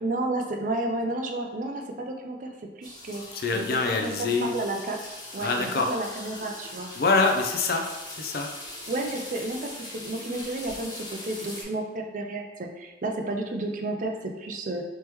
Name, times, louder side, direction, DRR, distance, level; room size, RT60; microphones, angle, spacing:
voice 1, 0.0-3.2 3.5-5.0 5.3-6.9 8.9-14.8, right 2 dB, 45° right, 3 dB, 0.4 m, -31 dB
sound 1, 2.8-11.6, left 1 dB, 20° left, 0.8 m, -41 dB
voice 2, 3.3-4.5 5.4-5.9 7.0-7.9 8.2-8.5, left 3 dB, 55° left, 3 dB, 0.5 m, -25 dB
3.5 x 3.2 x 3.0 m, 1.2 s
head